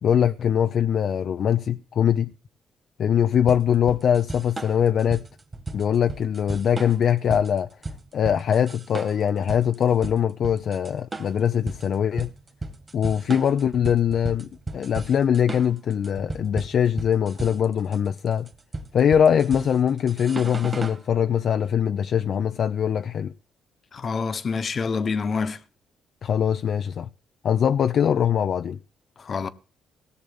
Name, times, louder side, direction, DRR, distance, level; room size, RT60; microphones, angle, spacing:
voice 1, 0.0-2.3 3.0-5.2 5.7-7.7 8.1-12.3 12.9-18.5 18.9-23.3 26.2-27.1 27.4-28.8, left 8 dB, 60° left, 0.6 m, -22 dB
sound 1, 3.5-21.0, right 2 dB, 25° right, 2.3 m, -36 dB
voice 2, 23.9-25.6 29.2-29.5, left 5 dB, 45° left, 1.2 m, -26 dB
17.5 x 6.9 x 8.6 m
cardioid pair, 90°, 0 cm